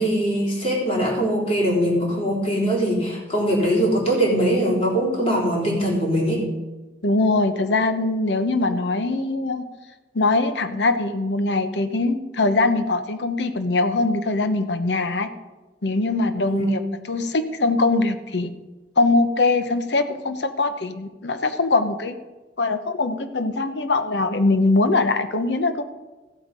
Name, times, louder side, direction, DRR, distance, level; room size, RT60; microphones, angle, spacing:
voice 1, 0.0-6.5 16.4-16.7, equal, 35° left, -3 dB, 3.8 m, -22 dB
voice 2, 7.0-9.6 10.1-15.3 15.8-16.8 17.1-18.5 19.0-22.2 22.6-25.8, left 3 dB, 80° left, 9 dB, 0.9 m, -22 dB
15.0 x 8.2 x 5.2 m, 1.2 s
head